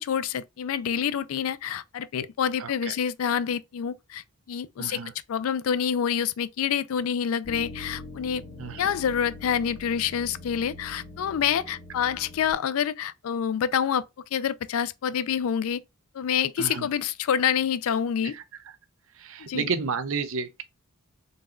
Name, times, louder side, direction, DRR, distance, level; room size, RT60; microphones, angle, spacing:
voice 1, 0.0-5.0 5.3-8.4 8.8-14.0 14.3-15.8 16.1-18.4 19.5-19.7, left 8 dB, 70° left, 0.3 m, -27 dB
voice 2, 2.6-2.9 4.8-5.1 8.6-8.9 16.6-16.9 18.2-18.4 19.1-20.6, right 5 dB, 65° right, 0.5 m, -31 dB
sound 1, 7.4-12.5, left 2 dB, 55° left, 1.0 m, -43 dB
3.9 x 2.3 x 3.7 m
head